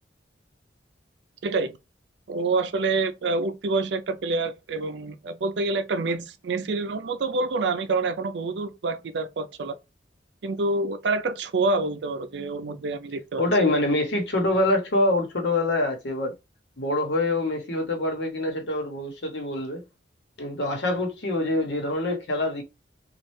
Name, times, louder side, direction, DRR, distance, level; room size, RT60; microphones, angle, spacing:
voice 1, 1.4-1.7 2.3-9.8 10.4-13.4, right 3 dB, 70° right, 0.5 m, -27 dB
voice 2, 13.4-16.3 16.8-19.8 20.4-22.6, left 2 dB, 70° left, 1.1 m, -25 dB
3.2 x 2.4 x 3.1 m
head